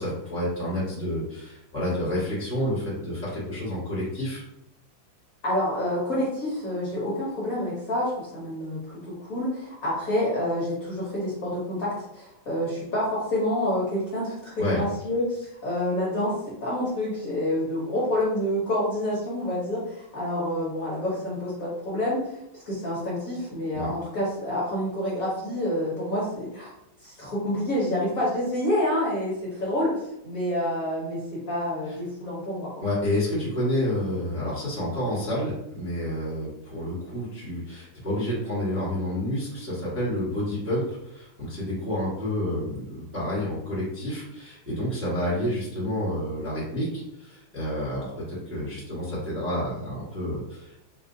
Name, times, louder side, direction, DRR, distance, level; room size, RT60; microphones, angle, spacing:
voice 1, 0.0-4.4 14.6-14.8 23.7-23.9 31.9-32.0 32.8-50.8, left 1 dB, 10° right, -8 dB, 0.9 m, -29 dB
voice 2, 5.4-16.3 16.6-22.4 22.7-26.7 27.0-29.9 30.2-32.8, left 1 dB, 55° left, -7 dB, 1.1 m, -28 dB
4.1 x 2.4 x 2.6 m, 0.84 s
omnidirectional pair, 2.2 m